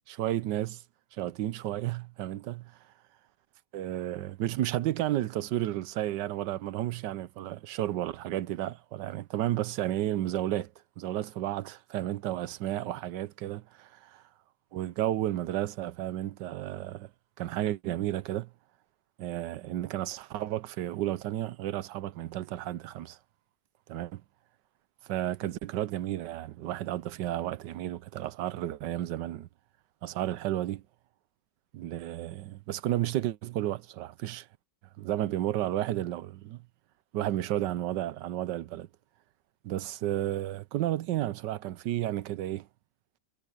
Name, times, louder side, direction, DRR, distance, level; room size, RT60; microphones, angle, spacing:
voice 1, 0.1-0.8 1.1-2.7 3.7-14.2 14.7-17.1 17.4-18.5 19.2-23.2 23.9-24.2 25.0-29.5 30.0-30.8 31.7-34.5 35.0-36.6 37.1-38.9 39.6-42.7, right 13 dB, 85° right, 1.3 m, -32 dB
omnidirectional pair, 1.9 m